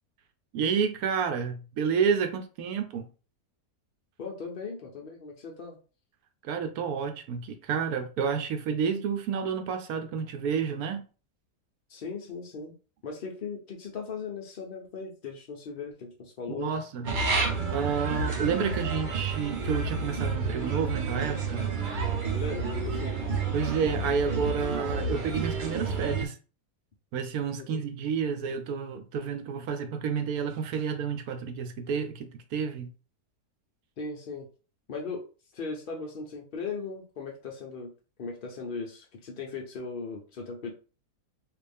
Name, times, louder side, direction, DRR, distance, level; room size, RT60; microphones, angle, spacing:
voice 1, 0.5-3.1 6.4-11.0 16.5-17.1 17.7-21.7 23.5-26.4 27.1-32.9, right 6 dB, 70° right, 1.0 m, -30 dB
voice 2, 4.2-5.8 11.9-12.7 13.0-16.8 22.3-23.2 27.5-27.7 34.0-34.5 34.9-35.3 35.5-37.9 38.2-40.7, left 4 dB, 60° left, 0.5 m, -38 dB
sound 1, 17.0-26.3, right 4 dB, 50° right, 0.5 m, -30 dB
3.3 x 2.5 x 3.4 m
omnidirectional pair, 1.7 m